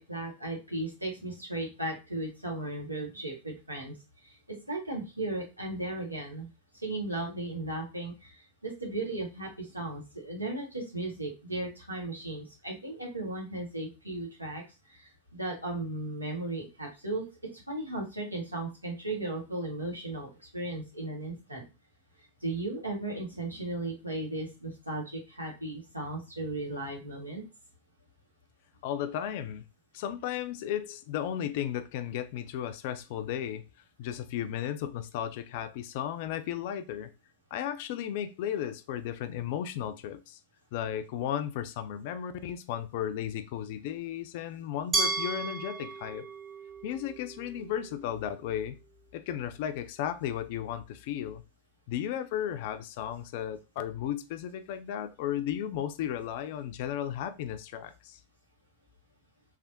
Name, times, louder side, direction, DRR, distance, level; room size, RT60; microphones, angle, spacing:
voice 1, 0.0-4.0 4.2-4.3 4.6-6.5 6.8-14.6 14.9-17.2 17.5-21.6 22.4-27.4, right 2 dB, 85° right, 1.1 m, -36 dB
voice 2, 28.8-29.6 29.9-33.6 34.0-37.1 37.5-40.4 40.7-46.3 46.8-48.7 49.1-51.4 51.9-58.2, left 10 dB, 50° left, 0.4 m, -34 dB
Glass, 44.9-47.8, right 3 dB, 20° right, 0.7 m, -33 dB
3.3 x 2.4 x 2.6 m
figure-of-eight pair, 90°, 0 cm